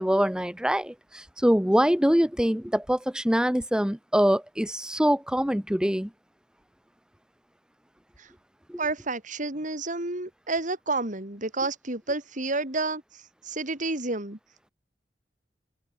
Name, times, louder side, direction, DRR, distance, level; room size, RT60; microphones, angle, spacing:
voice 1, 0.0-6.1 8.7-8.8, equal, 5° right, 1.1 m, -24 dB
voice 2, 8.8-13.0 13.4-14.4, right 3 dB, 45° right, 4.3 m, -30 dB
head